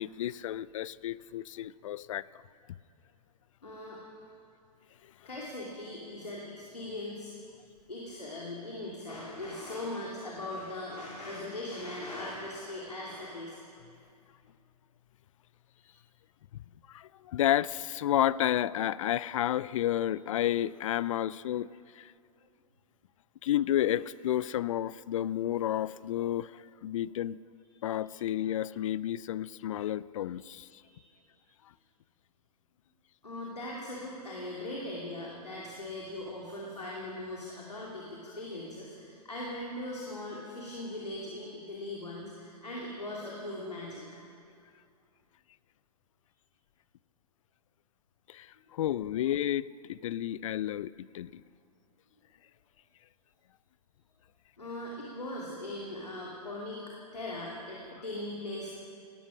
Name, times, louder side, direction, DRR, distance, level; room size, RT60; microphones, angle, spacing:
voice 1, 0.0-2.2 16.9-21.7 22.0-22.1 23.4-27.4 27.8-30.7 48.3-48.5 48.7-51.4, left 12 dB, 55° left, 20 dB, 0.4 m, -31 dB
voice 2, 3.6-4.0 5.2-7.3 7.9-13.6 15.8-15.9 27.7-27.9 28.1-28.2 30.4-31.1 33.2-44.0 54.6-58.7, left 1 dB, 85° left, -4 dB, 2.7 m, -40 dB
18.5 x 12.5 x 6.1 m, 2.4 s
figure-of-eight pair, 110°, 20 cm